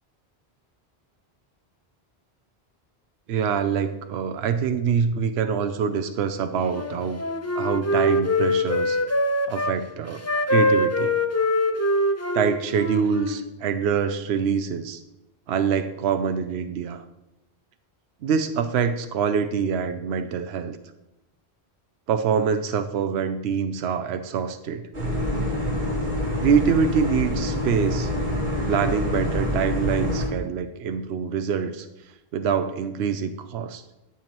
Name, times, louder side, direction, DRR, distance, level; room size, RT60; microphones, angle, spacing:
voice 1, 3.3-7.2 7.6-9.0 9.5-11.2 12.3-15.0 15.5-17.0 18.2-20.8 22.1-24.9 26.4-28.1 28.7-31.9 32.3-33.8, right 6 dB, 80° right, 8 dB, 0.9 m, -25 dB
Wind instrument woodwind instrument, 6.6-9.8 10.2-13.4, left 1 dB, 20° left, 0.4 m, -24 dB
sound 1, 24.9-30.3, left 1 dB, 60° right, 2.4 m, -26 dB
12.0 x 7.1 x 3.0 m, 0.92 s
omnidirectional pair, 1.1 m